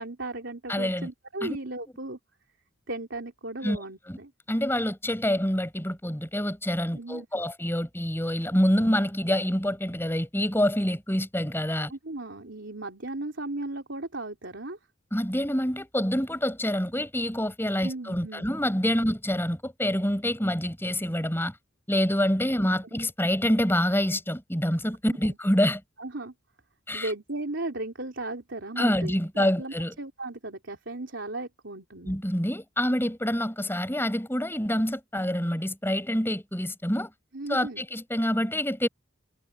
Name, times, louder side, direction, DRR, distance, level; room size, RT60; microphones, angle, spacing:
voice 1, 0.0-2.2 2.9-4.3 6.9-7.4 11.8-14.8 17.8-18.5 25.2-25.4 26.0-26.3 26.9-32.1 37.3-37.8, right 2 dB, 65° right, 3.9 m, -36 dB
voice 2, 0.7-1.1 1.4-1.6 3.6-3.8 4.1-4.2 4.5-11.9 15.1-21.5 21.9-25.8 26.9-27.1 28.8-29.9 32.1-37.1 37.5-38.9, equal, 10° left, 6.0 m, -26 dB
head